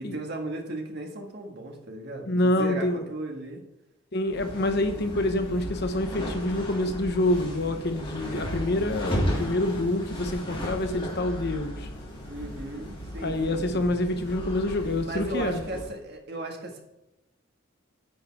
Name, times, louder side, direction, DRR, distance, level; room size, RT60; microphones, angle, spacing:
voice 1, 0.0-3.6 12.3-13.9 15.0-16.8, right 2 dB, 50° right, 2 dB, 1.7 m, -36 dB
voice 2, 2.3-3.0 4.1-11.9 13.2-15.6, left 1 dB, 50° left, 7 dB, 0.9 m, -27 dB
sound 1, 4.2-16.0, equal, 25° left, 2.9 m, -35 dB
9.9 x 5.5 x 4.7 m, 0.93 s
head